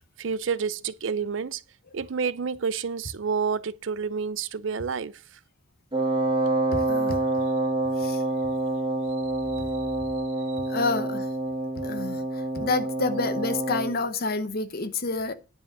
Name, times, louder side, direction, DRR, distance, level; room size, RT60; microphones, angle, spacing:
voice 1, 0.2-1.6 1.9-5.2 9.6-9.7, right 5 dB, 70° right, 0.5 m, -29 dB
Wind instrument woodwind instrument, 5.9-14.0, right 2 dB, 25° right, 1.9 m, -27 dB
voice 2, 6.7-7.2 8.0-8.2 10.7-11.3 11.8-15.3, left 3 dB, 50° left, 1.0 m, -29 dB
10.0 x 5.0 x 6.7 m
head